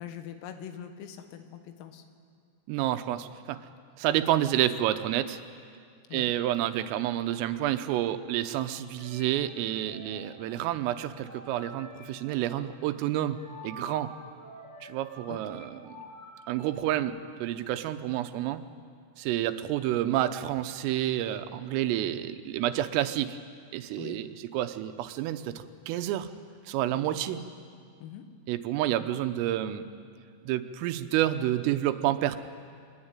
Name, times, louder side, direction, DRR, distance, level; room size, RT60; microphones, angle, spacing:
voice 1, 0.0-2.0 6.1-6.3 15.3-15.6 24.0-24.2 26.9-27.2 28.0-28.2, left 9 dB, 90° left, 7 dB, 4.2 m, -43 dB
voice 2, 2.7-3.6 4.0-5.4 6.1-13.4 13.6-14.1 14.8-16.0 16.5-18.6 19.2-23.4 23.7-26.3 26.7-27.4 28.5-29.9 30.4-32.4, right 13 dB, 85° right, 9 dB, 3.5 m, -29 dB
sound 1, 9.0-17.0, left 1 dB, 30° left, 3.4 m, -49 dB
24.5 x 21.0 x 9.0 m, 2.2 s
omnidirectional pair, 5.9 m